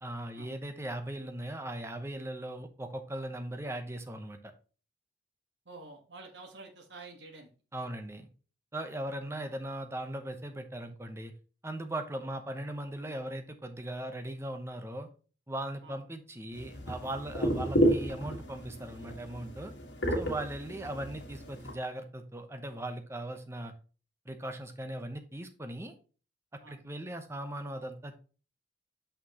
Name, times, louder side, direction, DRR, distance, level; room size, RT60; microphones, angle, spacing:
voice 1, 0.0-4.5 7.7-8.3 8.7-11.3 11.6-15.1 15.5-19.7 20.1-23.7 24.2-25.9 26.5-28.2, right 1 dB, 15° right, 7 dB, 0.8 m, -39 dB
voice 2, 5.6-7.5 15.8-16.0 26.6-26.8, right 3 dB, 80° right, 2 dB, 1.4 m, -49 dB
sound 1, 16.5-21.7, equal, 80° left, 1.7 m, -32 dB
6.1 x 6.0 x 2.9 m, 0.36 s
head